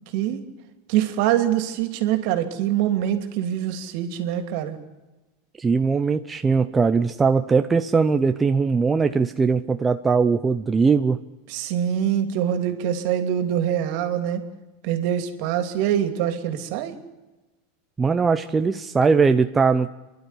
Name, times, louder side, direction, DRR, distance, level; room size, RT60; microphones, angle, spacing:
voice 1, 0.1-0.4 0.9-4.8 11.5-14.4 14.8-17.0, right 10 dB, 55° right, 8 dB, 2.8 m, -24 dB
voice 2, 5.6-11.2 18.0-19.9, right 5 dB, 15° right, 8 dB, 0.7 m, -20 dB
27.5 x 12.0 x 10.0 m, 1.1 s
supercardioid pair, 135°, 0 cm